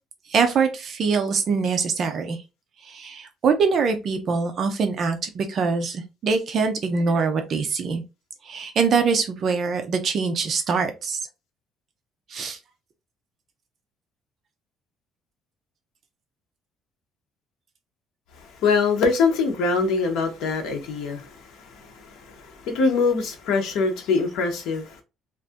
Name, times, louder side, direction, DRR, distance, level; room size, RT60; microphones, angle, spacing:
voice 1, 0.3-2.4 2.8-8.0 8.4-11.2 12.3-12.6, right 5 dB, 35° right, 0.5 m, -23 dB
voice 2, 18.4-25.0, left 4 dB, 65° left, 0.9 m, -24 dB
2.6 x 2.5 x 3.5 m
cardioid pair, 180°, 0 cm